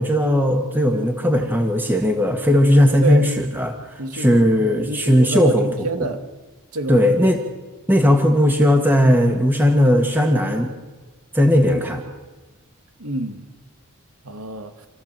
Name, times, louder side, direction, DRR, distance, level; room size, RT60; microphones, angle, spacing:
voice 1, 0.0-3.7 4.1-6.1 6.9-7.4 7.9-10.7 11.3-12.0, equal, 10° right, 2 dB, 1.6 m, -17 dB
voice 2, 4.0-6.2 6.7-7.3 13.0-13.5 14.2-14.7, right 2 dB, 90° right, 6 dB, 2.0 m, -27 dB
28.5 x 14.0 x 7.6 m, 1.3 s
head